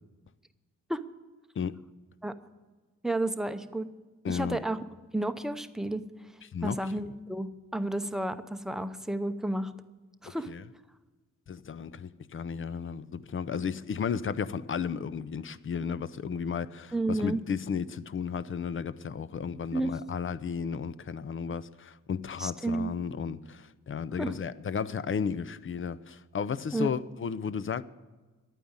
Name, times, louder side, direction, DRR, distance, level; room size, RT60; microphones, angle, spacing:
voice 1, 3.0-3.9 4.3-4.8 5.1-6.0 6.6-9.7 10.2-10.5 16.9-17.4 19.7-20.0 22.4-22.9 24.2-24.3 26.7-26.9, right 2 dB, ahead, 0.7 m, -31 dB
voice 2, 4.2-4.6 6.5-7.1 10.5-10.6 11.5-27.8, left 6 dB, 45° left, 0.5 m, -34 dB
12.0 x 9.2 x 8.7 m
wide cardioid pair, 120°, 30 cm